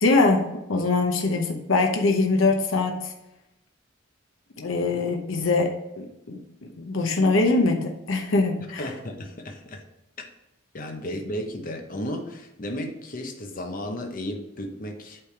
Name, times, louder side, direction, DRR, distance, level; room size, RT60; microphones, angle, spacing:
voice 1, 0.0-3.1 4.6-8.9, left 3 dB, 75° left, 2 dB, 0.8 m, -23 dB
voice 2, 8.8-9.8 10.7-15.2, equal, 40° left, 3 dB, 0.8 m, -34 dB
8.5 x 3.4 x 4.5 m, 0.89 s
head